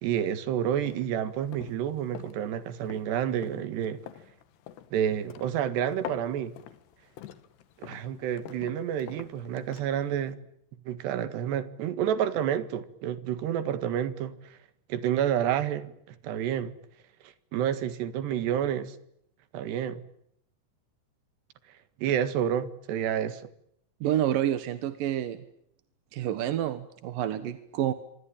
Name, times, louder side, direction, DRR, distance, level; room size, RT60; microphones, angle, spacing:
voice 1, 0.0-4.0 4.9-6.5 7.8-10.4 10.9-14.6 14.9-16.7 17.5-19.0 19.5-20.0 22.0-23.4, right 9 dB, 90° right, 3.9 m, -29 dB
sound 1, 0.7-10.3, left 11 dB, 85° left, 3.7 m, -46 dB
voice 2, 24.0-25.4 26.1-27.9, right 11 dB, 65° right, 2.7 m, -28 dB
26.5 x 25.0 x 8.9 m
omnidirectional pair, 4.7 m